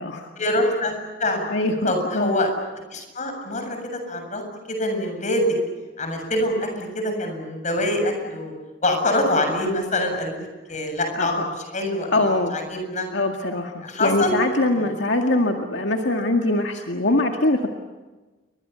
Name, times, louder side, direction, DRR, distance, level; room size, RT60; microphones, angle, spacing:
voice 1, 0.4-1.5 1.9-2.5 2.9-3.8 4.1-4.4 4.7-5.4 6.0-8.5 8.8-12.2 12.5-13.1 13.8-14.4 14.8-15.0, left 1 dB, 40° left, 5 dB, 7.3 m, -25 dB
voice 2, 1.5-2.3 11.1-11.5 12.1-12.6 13.1-17.7, left 2 dB, 80° left, 3 dB, 2.0 m, -23 dB
30.0 x 24.0 x 6.9 m, 1.2 s
head